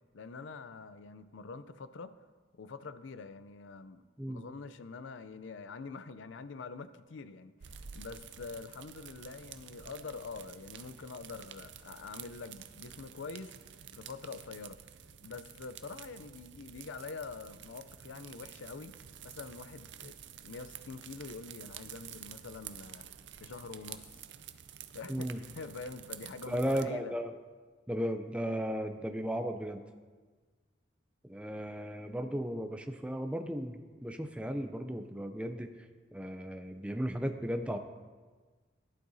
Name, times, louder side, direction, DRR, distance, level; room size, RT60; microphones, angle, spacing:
voice 1, 0.1-2.1 2.5-13.5 13.9-14.8 15.2-19.0 19.2-23.1 23.4-24.1 24.9-27.1, left 4 dB, 85° left, 13 dB, 0.5 m, -45 dB
sound 1, 7.6-26.8, right 9 dB, 70° right, 0.5 m, -50 dB
voice 2, 25.1-25.4 26.5-27.3 27.9-29.8 31.2-35.9 36.1-37.8, equal, 5° right, 6 dB, 0.4 m, -35 dB
11.5 x 11.5 x 2.7 m, 1.4 s
head